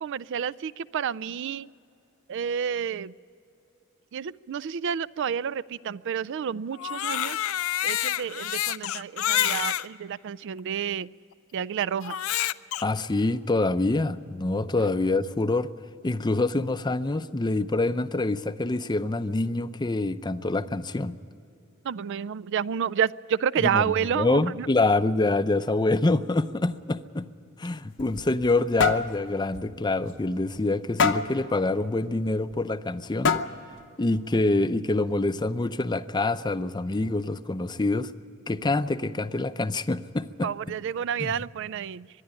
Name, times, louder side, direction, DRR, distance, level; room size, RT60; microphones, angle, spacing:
voice 1, 0.0-1.7 2.3-3.1 4.1-7.4 7.8-11.1 11.5-12.2 21.8-24.7 40.4-42.1, right 8 dB, 60° right, 19 dB, 0.4 m, -29 dB
Crying sobbing, 6.7-9.9 10.6-10.7 12.0-12.8, left 12 dB, 80° left, 0.5 m, -28 dB
voice 2, 12.8-15.7 16.0-21.2 23.7-23.8 24.2-27.3 27.6-33.3 34.0-38.1 38.5-40.5 41.2-41.3, left 2 dB, 20° left, 12 dB, 0.5 m, -26 dB
sound 1, 27.8-28.5 28.8-29.1 29.5-29.7 30.1-30.2 31.0-31.4 32.5-32.6 33.2-33.7, left 5 dB, 60° left, 0.8 m, -24 dB
24.5 x 11.0 x 9.9 m, 2.7 s
head